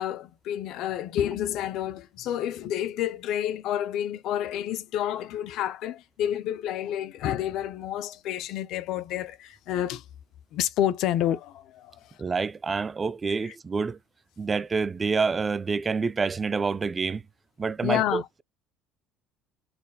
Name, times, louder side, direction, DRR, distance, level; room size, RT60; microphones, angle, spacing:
voice 1, 0.0-10.0 10.5-12.1 13.4-13.6 17.8-18.3, left 11 dB, 70° left, 0.6 m, -29 dB
voice 2, 12.2-14.0 14.4-17.2 17.6-18.4, right 4 dB, 25° right, 0.3 m, -27 dB
4.2 x 3.9 x 2.3 m
cardioid pair, 110°, 0 cm